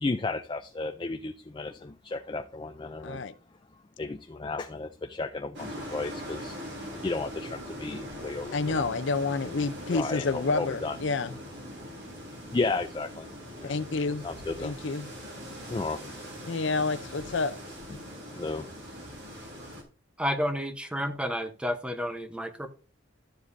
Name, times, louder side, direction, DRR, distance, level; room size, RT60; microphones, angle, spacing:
voice 1, 0.0-3.2 4.0-6.6 7.0-8.9 9.9-11.0 12.5-13.3 13.6-13.7 14.2-14.7 15.7-16.0 18.3-18.7, left 3 dB, 25° left, 0.4 m, -33 dB
voice 2, 3.0-3.3 8.5-11.4 13.6-14.3 14.6-15.1 16.5-17.5 17.9-18.0, left 3 dB, 65° left, 0.6 m, -29 dB
sound 1, 5.5-19.8, equal, 55° right, 3.0 m, -41 dB
voice 3, 20.2-22.7, equal, 5° right, 0.8 m, -31 dB
13.0 x 7.6 x 2.7 m
head